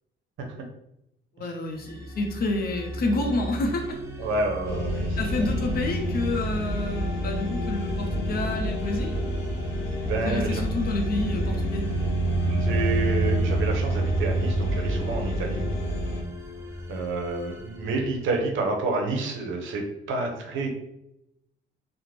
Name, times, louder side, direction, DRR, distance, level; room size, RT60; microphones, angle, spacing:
voice 1, 1.4-4.0 5.2-9.3 10.2-11.8, left 2 dB, 50° left, 3 dB, 0.6 m, -29 dB
sound 1, 1.7-18.8, equal, 15° right, 0.5 m, -38 dB
voice 2, 4.2-5.4 10.0-10.6 12.4-15.6 16.9-20.7, right 3 dB, 80° right, 2 dB, 0.6 m, -29 dB
sound 2, 4.6-16.2, right 1 dB, 85° left, 0.7 m, -27 dB
2.5 x 2.1 x 3.1 m, 0.83 s
cardioid pair, 90°, 20 cm